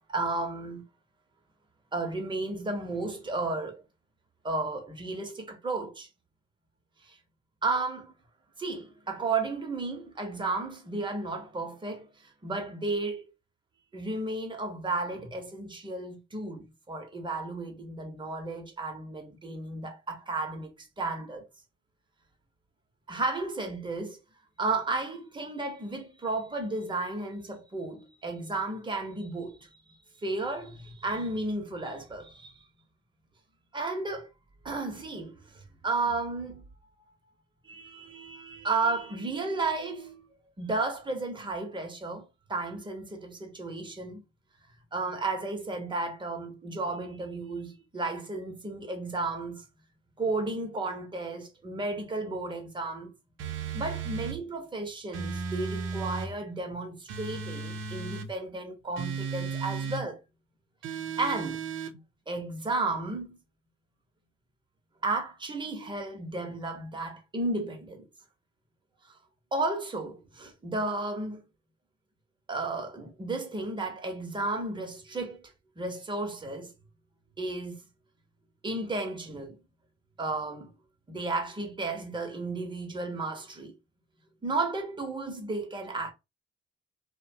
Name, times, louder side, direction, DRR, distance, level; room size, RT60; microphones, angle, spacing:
voice 1, 0.1-0.8 1.9-3.8 4.4-6.1 7.0-7.2 7.6-8.1 8.6-13.2 13.9-21.5 23.1-24.2 24.6-29.7 30.2-32.6 33.7-34.3 34.6-36.6 37.6-40.3 40.6-44.2 44.9-49.6 50.2-53.1 53.7-60.2 61.2-61.6 62.3-63.4 65.0-68.1 69.5-71.4 72.5-76.7 77.4-77.8 78.6-79.6 80.2-80.8 81.1-83.7 84.4-86.1, right 3 dB, 25° right, 0.9 m, -33 dB
sound 1, 53.4-54.4 55.1-56.3 57.1-58.3 59.0-60.0 60.8-61.9, right 5 dB, 80° right, 0.6 m, -35 dB
2.6 x 2.2 x 2.7 m
cardioid pair, 90°, 20 cm